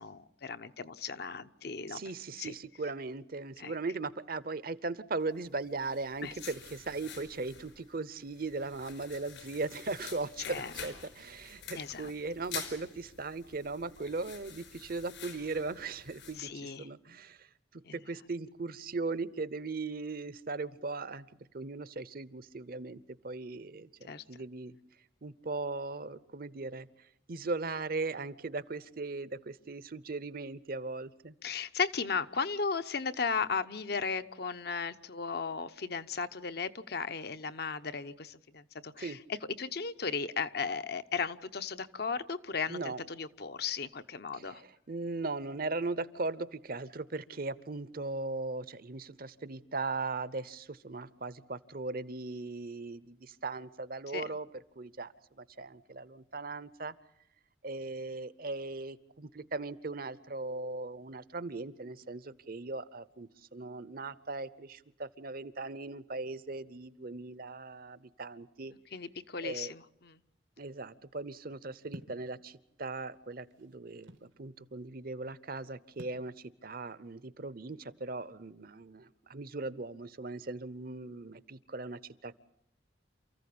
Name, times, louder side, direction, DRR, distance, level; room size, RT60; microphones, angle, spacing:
voice 1, 0.0-2.0 2.4-2.5 3.6-3.7 6.2-6.3 10.5-10.7 11.8-12.1 16.4-16.9 17.8-17.9 24.0-24.2 31.4-44.6 54.1-54.2 68.9-70.2, left 5 dB, 55° left, 11 dB, 0.8 m, -36 dB
voice 2, 1.9-17.5 17.7-21.3 21.5-24.7 25.2-26.9 27.3-31.3 39.0-39.2 42.7-43.0 44.3-54.5 54.8-56.9 57.6-68.7 69.4-69.7 70.6-82.4, right 3 dB, 50° right, 17 dB, 0.8 m, -38 dB
sound 1, 5.7-16.4, left 7 dB, 80° left, 4.9 m, -48 dB
sound 2, 71.9-72.3 73.1-74.3 76.0-76.3, right 1 dB, 90° right, 1.8 m, -49 dB
28.5 x 15.0 x 8.6 m, 0.80 s
head